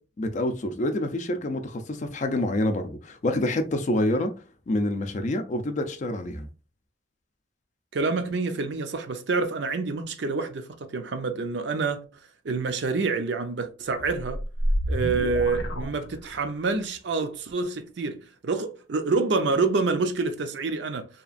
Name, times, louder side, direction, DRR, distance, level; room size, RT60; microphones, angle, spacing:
voice 1, 0.2-4.3 4.7-6.5, left 1 dB, 40° left, 0.4 m, -27 dB
voice 2, 7.9-12.0 12.4-14.4 14.9-21.1, right 4 dB, 65° right, 0.5 m, -27 dB
sound 1, 13.9-16.6, equal, 85° left, 0.6 m, -29 dB
2.9 x 2.4 x 2.4 m
head